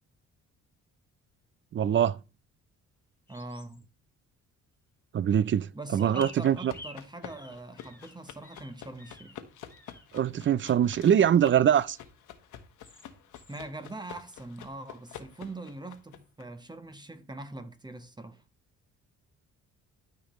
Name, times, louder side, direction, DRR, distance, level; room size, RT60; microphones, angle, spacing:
voice 1, 1.7-2.2 5.1-6.7 10.1-12.0, right 9 dB, 40° right, 0.5 m, -23 dB
sound 1, 3.3-3.8 6.0-9.4 9.7-10.1 10.8-12.1 12.8-13.1 13.3-13.6, left 2 dB, 10° left, 1.3 m, -51 dB
voice 2, 3.3-3.8 5.7-9.4 13.5-18.4, right 2 dB, 15° right, 1.0 m, -42 dB
sound 2, 5.9-16.4, left 9 dB, 80° left, 1.3 m, -49 dB
13.0 x 5.1 x 3.1 m
cardioid pair, 90°, 30 cm